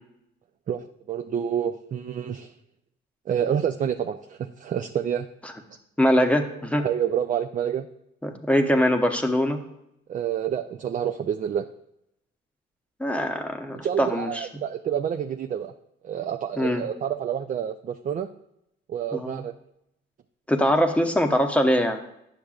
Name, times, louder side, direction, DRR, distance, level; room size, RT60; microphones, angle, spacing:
voice 1, 0.7-2.5 3.3-5.3 6.8-7.9 10.1-11.7 13.8-15.7 16.0-18.3 18.9-19.5, right 9 dB, 40° right, 6 dB, 0.4 m, -28 dB
voice 2, 6.0-6.9 8.2-9.6 13.0-14.5 16.6-16.8 19.1-19.4 20.5-22.0, equal, 5° left, 4 dB, 0.8 m, -22 dB
10.0 x 6.5 x 2.4 m, 0.81 s
cardioid pair, 90°, 20 cm